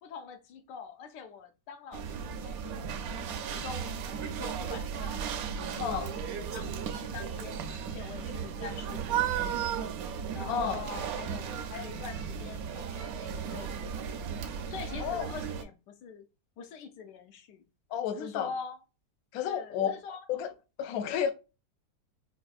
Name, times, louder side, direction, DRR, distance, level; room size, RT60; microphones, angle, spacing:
voice 1, 0.0-5.2 5.6-9.8 10.3-14.0 14.7-16.3 16.6-17.6 18.1-18.8 19.4-20.2, left 6 dB, 90° left, 1.2 m, -44 dB
sound 1, 1.9-15.6, right 7 dB, 70° right, 0.9 m, -35 dB
voice 2, 10.5-10.8 15.0-15.2 17.9-18.5 19.3-20.0 20.3-20.5 20.8-21.3, left 8 dB, 70° left, 0.9 m, -31 dB
4.2 x 2.4 x 2.3 m
omnidirectional pair, 1.8 m